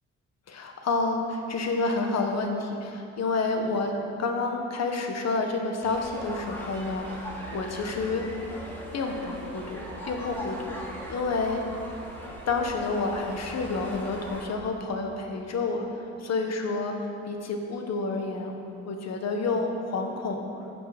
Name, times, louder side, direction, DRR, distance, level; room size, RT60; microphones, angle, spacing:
voice 1, 0.5-8.3 8.9-10.8 11.1-11.6 12.5-15.9 16.2-18.5 18.8-20.4, left 3 dB, 60° left, 3 dB, 1.5 m, -29 dB
sound 1, 5.8-14.4, equal, 5° left, 2.8 m, -39 dB
15.5 x 6.0 x 5.1 m, 2.8 s
cardioid pair, 85°, 30 cm